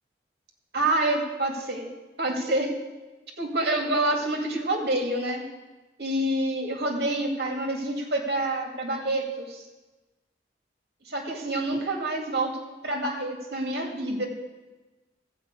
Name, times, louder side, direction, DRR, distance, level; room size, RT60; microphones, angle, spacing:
voice 1, 0.7-1.9 2.2-2.7 3.4-5.4 6.0-9.6 11.1-12.5 12.8-14.3, right 1 dB, 60° right, 0 dB, 2.5 m, -27 dB
15.0 x 5.9 x 8.3 m, 1.2 s
head